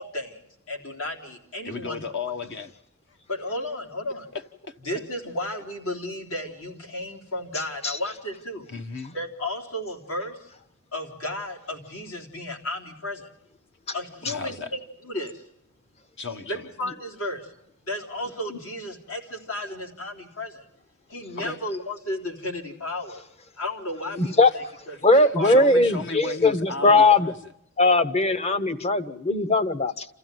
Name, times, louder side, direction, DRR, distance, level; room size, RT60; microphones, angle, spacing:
voice 1, 0.0-2.0 3.3-4.3 4.9-8.7 9.1-10.4 10.9-13.3 13.9-15.4 16.5-17.5 17.8-20.6 21.1-23.2 23.6-25.5 26.8-27.0, left 1 dB, 70° left, 2 dB, 3.8 m, -33 dB
voice 2, 1.6-2.7 3.1-3.2 4.1-4.7 8.7-9.1 14.2-14.7 16.2-16.7 21.4-21.6 24.9-27.4, left 4 dB, 55° left, 5 dB, 1.3 m, -35 dB
voice 3, 24.2-24.5 25.0-27.3 27.8-30.1, left 2 dB, 30° left, 13 dB, 0.9 m, -19 dB
28.5 x 14.5 x 9.3 m, 0.79 s
head